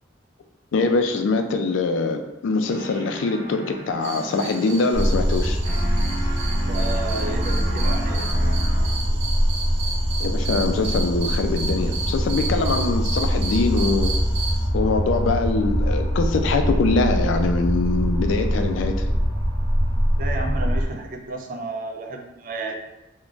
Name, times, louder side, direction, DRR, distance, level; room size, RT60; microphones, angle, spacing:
voice 1, 0.7-5.6 10.2-14.1 14.7-18.9, left 3 dB, 80° left, 6 dB, 0.3 m, -23 dB
sound 1, 2.6-5.4 5.6-9.3, right 1 dB, 35° left, 1.1 m, -35 dB
sound 2, 4.0-14.7, right 3 dB, 60° right, 0.7 m, -34 dB
sound 3, 4.9-20.9, equal, 15° left, 0.8 m, -23 dB
voice 2, 6.7-8.3 20.2-22.8, right 2 dB, 45° right, 3 dB, 0.3 m, -32 dB
2.4 x 2.2 x 3.8 m, 0.97 s
head